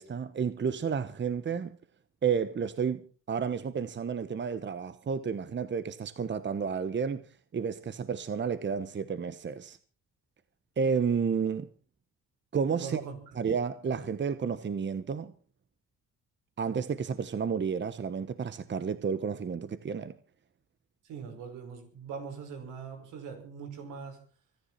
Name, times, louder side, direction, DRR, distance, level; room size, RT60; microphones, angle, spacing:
voice 1, 0.0-1.8 2.2-7.2 7.5-9.8 10.8-11.7 12.5-13.0 13.4-15.3 16.6-20.1, right 6 dB, 40° right, 1.2 m, -31 dB
voice 2, 12.8-13.2 21.1-24.2, right 6 dB, 90° right, 5.5 m, -41 dB
26.0 x 10.5 x 4.3 m
cardioid pair, 90°, 30 cm